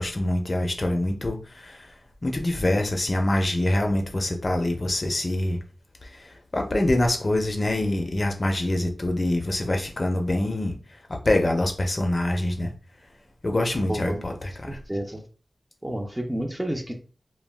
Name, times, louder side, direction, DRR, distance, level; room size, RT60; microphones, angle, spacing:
voice 1, 0.0-1.9 2.2-5.6 6.0-10.7 11.1-12.7 13.4-14.8, left 1 dB, 40° left, 0.5 m, -25 dB
voice 2, 13.9-14.2 14.7-15.2 15.8-17.0, right 1 dB, 15° right, 0.5 m, -30 dB
2.2 x 2.1 x 3.2 m
wide cardioid pair, 75°, 0 cm